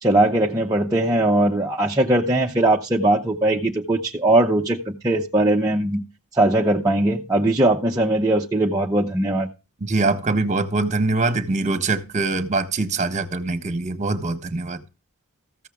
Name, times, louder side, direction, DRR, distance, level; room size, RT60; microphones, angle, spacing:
voice 1, 0.0-6.0 6.3-9.5, right 1 dB, 15° right, 0.7 m, -20 dB
voice 2, 9.9-14.8, right 3 dB, 35° right, 1.2 m, -23 dB
14.5 x 7.2 x 3.5 m
head